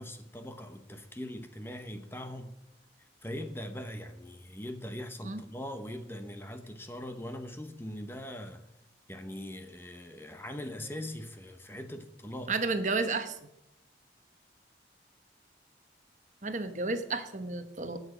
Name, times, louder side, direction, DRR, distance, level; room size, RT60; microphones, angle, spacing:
voice 1, 0.0-2.5 3.0-8.7 9.1-12.6, left 1 dB, 10° left, 0.8 m, -41 dB
voice 2, 12.5-13.4 16.4-18.0, right 3 dB, 40° right, 1.0 m, -32 dB
19.5 x 6.6 x 4.9 m
head